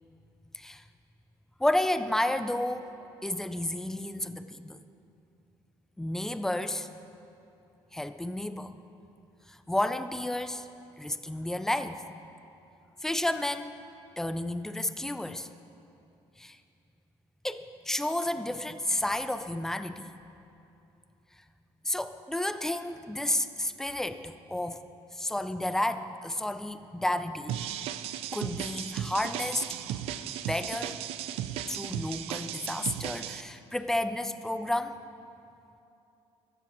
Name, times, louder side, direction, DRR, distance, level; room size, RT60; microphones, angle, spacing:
voice 1, 1.6-2.9 3.2-4.8 6.0-6.9 7.9-8.7 9.5-10.7 11.0-12.0 13.0-13.7 14.2-15.5 16.4-16.6 17.4-20.1 21.8-24.8 25.1-27.5 28.3-29.7 30.5-31.0 31.7-35.0, left 1 dB, 5° left, 11 dB, 0.4 m, -31 dB
sound 1, 27.5-33.4, right 11 dB, 75° right, 0.4 m, -36 dB
14.5 x 13.0 x 3.0 m, 2.8 s
cardioid pair, 130°, 10 cm